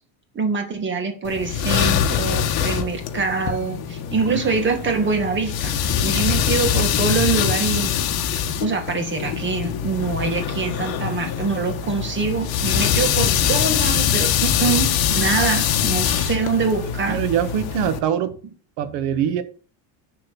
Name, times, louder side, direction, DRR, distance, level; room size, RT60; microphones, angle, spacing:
voice 1, 0.3-5.8 6.0-7.9 8.6-17.2, right 4 dB, 25° right, 1.9 m, -24 dB
sound 1, 1.3-18.0, left 9 dB, 55° left, 1.4 m, -23 dB
voice 2, 17.1-18.4 18.8-19.4, right 9 dB, 75° right, 1.4 m, -23 dB
10.5 x 3.8 x 6.9 m
cardioid pair, 155°, 44 cm